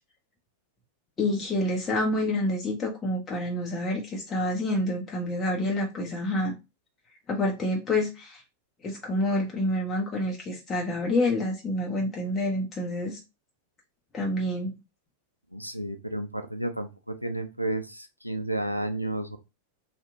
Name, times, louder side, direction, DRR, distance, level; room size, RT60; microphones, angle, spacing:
voice 1, 1.2-6.5 7.3-8.4 8.8-13.2 14.1-14.7, left 1 dB, 20° left, 0.7 m, -28 dB
voice 2, 15.5-19.4, right 1 dB, 90° left, 0.4 m, -32 dB
2.8 x 2.2 x 3.6 m
figure-of-eight pair, 90°, 0 cm